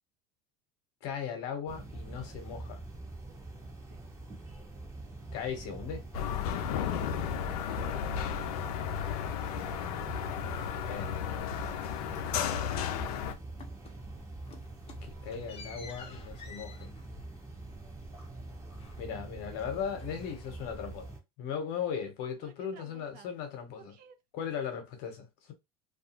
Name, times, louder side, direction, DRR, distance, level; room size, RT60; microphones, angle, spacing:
voice 1, 1.0-2.8 5.3-6.1 10.5-11.3 15.0-16.9 19.0-24.0 24.3-25.5, left 7 dB, 65° left, 1.0 m, -38 dB
sound 1, 1.7-21.2, right 2 dB, 15° right, 0.9 m, -45 dB
sound 2, 6.1-13.3, left 8 dB, 85° left, 0.5 m, -33 dB
voice 2, 12.1-13.2 19.4-19.6 22.4-23.3 23.8-24.2, right 7 dB, 50° right, 0.6 m, -57 dB
sound 3, 13.6-14.1 14.3-19.3 19.6-20.9, left 5 dB, 35° left, 0.8 m, -53 dB
2.4 x 2.3 x 2.8 m
supercardioid pair, 110°, 19 cm